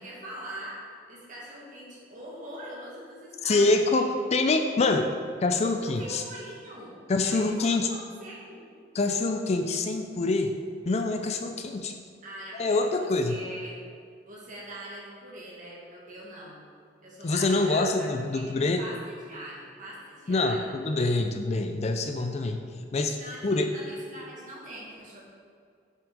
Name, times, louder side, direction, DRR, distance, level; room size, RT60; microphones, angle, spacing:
voice 1, 0.0-4.1 5.8-6.9 7.2-8.6 12.2-13.8 14.3-16.6 17.0-20.7 22.1-22.3 23.2-25.2, right 1 dB, 45° right, -5 dB, 2.1 m, -43 dB
voice 2, 3.4-5.1 5.4-6.2 7.1-7.9 8.9-10.5 10.9-11.9 12.6-13.4 17.2-18.8 20.3-22.6 22.9-23.2 23.4-23.7, left 2 dB, 35° left, 6 dB, 0.4 m, -25 dB
6.8 x 6.0 x 5.0 m, 2.3 s
head